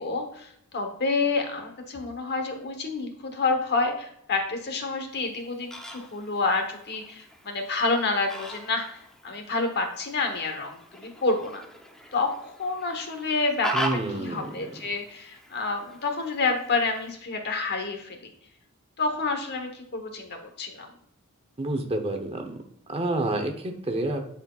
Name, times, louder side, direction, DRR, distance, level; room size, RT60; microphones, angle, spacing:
voice 1, 0.0-8.9 9.2-11.6 12.1-18.3 19.0-20.9, left 3 dB, 50° left, 5 dB, 1.1 m, -28 dB
Fowl, 5.1-17.1, right 1 dB, 5° left, 0.7 m, -39 dB
voice 2, 13.7-14.5 21.6-22.6 22.9-24.2, right 2 dB, 25° right, 6 dB, 0.8 m, -28 dB
10.5 x 4.4 x 2.4 m, 0.72 s
head